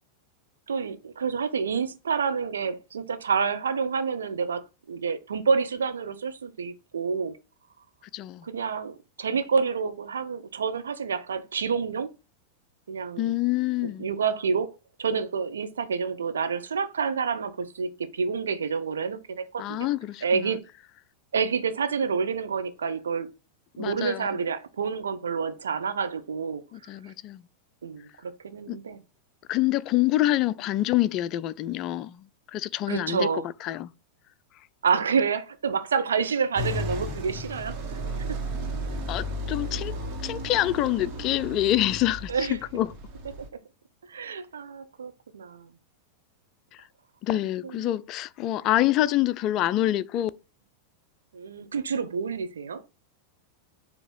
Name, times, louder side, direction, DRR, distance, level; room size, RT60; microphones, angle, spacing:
voice 1, 0.7-7.4 8.4-12.1 12.9-13.3 14.0-14.7 15.0-19.9 20.2-20.6 21.3-23.3 23.8-26.6 27.8-29.0 32.9-33.5 34.8-38.0 38.3-38.4 42.3-42.6 44.1-45.7 47.6-47.9 51.3-52.8, right 5 dB, 70° right, 0.7 m, -28 dB
voice 2, 8.1-8.4 13.2-14.1 19.6-20.5 23.8-24.4 26.7-27.4 28.7-28.8 29.5-32.2 32.5-33.3 33.6-33.9 39.1-40.0 40.2-42.9 47.2-50.3, left 14 dB, 35° left, 0.3 m, -26 dB
sound 1, 36.6-43.5, equal, 40° right, 1.8 m, -34 dB
7.0 x 2.8 x 5.3 m
figure-of-eight pair, 90°, 0 cm